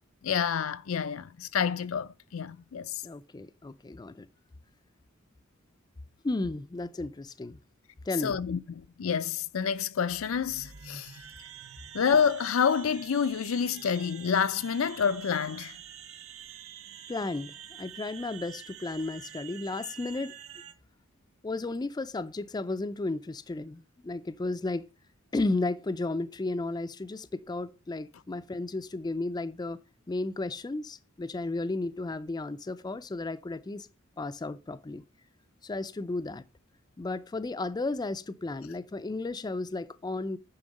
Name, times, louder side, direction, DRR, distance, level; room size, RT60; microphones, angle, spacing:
voice 1, 0.2-3.0 8.2-11.2 11.9-15.8, left 7 dB, 80° left, 0.5 m, -28 dB
voice 2, 3.0-4.3 6.2-7.6 8.1-8.4 17.1-20.3 21.4-24.9 25.3-29.8 30.1-33.9 34.2-35.0 35.6-36.4 37.0-40.4, left 2 dB, 20° left, 0.4 m, -33 dB
sound 1, 10.1-20.7, right 9 dB, 80° right, 0.9 m, -47 dB
9.7 x 3.7 x 5.2 m
head